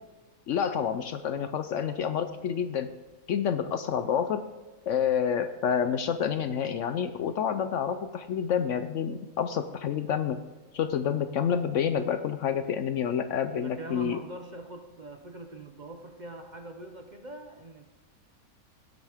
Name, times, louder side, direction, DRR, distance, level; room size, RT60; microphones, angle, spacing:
voice 1, 0.5-2.9 3.3-4.5 4.9-10.4 10.7-14.2, left 8 dB, 65° left, 10 dB, 0.8 m, -28 dB
voice 2, 13.6-17.9, right 2 dB, 40° right, 4 dB, 0.8 m, -43 dB
16.5 x 8.0 x 3.5 m, 1.2 s
omnidirectional pair, 1.6 m